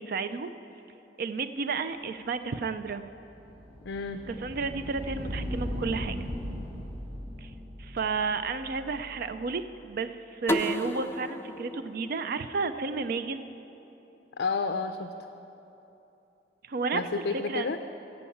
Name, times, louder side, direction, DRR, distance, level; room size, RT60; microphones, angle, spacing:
voice 1, 0.1-0.5 1.2-3.0 4.3-6.2 7.4-7.5 7.8-13.5 16.6-17.7, right 4 dB, 60° right, 11 dB, 0.4 m, -32 dB
sound 1, 2.9-9.7, equal, 35° right, 1.4 m, -38 dB
voice 2, 3.8-4.2 14.4-15.1 16.9-17.8, left 4 dB, 90° left, 7 dB, 0.5 m, -30 dB
sound 2, 10.5-13.3, left 1 dB, 15° left, 0.4 m, -33 dB
14.0 x 5.5 x 8.5 m, 2.9 s
head